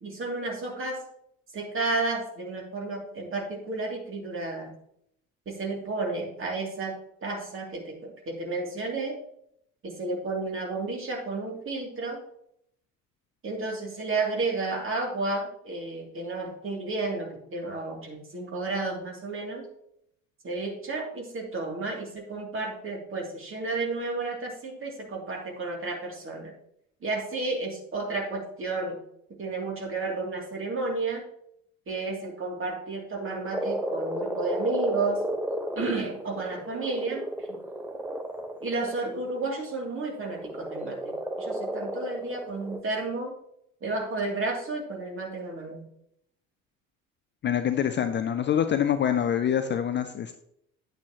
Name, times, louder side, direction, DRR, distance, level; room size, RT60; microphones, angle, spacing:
voice 1, 0.0-1.0 1.5-4.7 5.5-9.2 9.8-12.2 13.4-19.7 20.4-26.5 27.0-29.0 29.4-31.2 31.9-35.2 35.8-37.6 38.6-43.3 43.8-45.8, right 3 dB, 30° right, 0 dB, 2.8 m, -32 dB
Frog, 33.5-39.4 40.3-42.8, right 1 dB, 5° right, 1.0 m, -33 dB
voice 2, 47.4-50.4, left 9 dB, 30° left, 9 dB, 0.6 m, -25 dB
9.3 x 8.5 x 3.0 m, 0.74 s
figure-of-eight pair, 60°, 40 cm